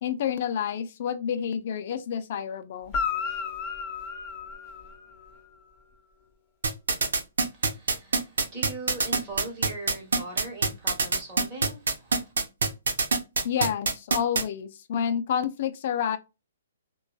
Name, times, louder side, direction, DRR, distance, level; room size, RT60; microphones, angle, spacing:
voice 1, 0.0-2.9 13.4-16.2, left 8 dB, 50° left, 0.3 m, -29 dB
Guitar, 2.9-5.4 9.3-9.4, left 6 dB, 20° left, 1.0 m, -33 dB
sound 1, 6.6-14.4, right 4 dB, 80° right, 0.6 m, -24 dB
voice 2, 7.6-11.8, right 3 dB, 30° right, 1.3 m, -39 dB
2.6 x 2.2 x 2.2 m
hypercardioid pair, 140°, 0 cm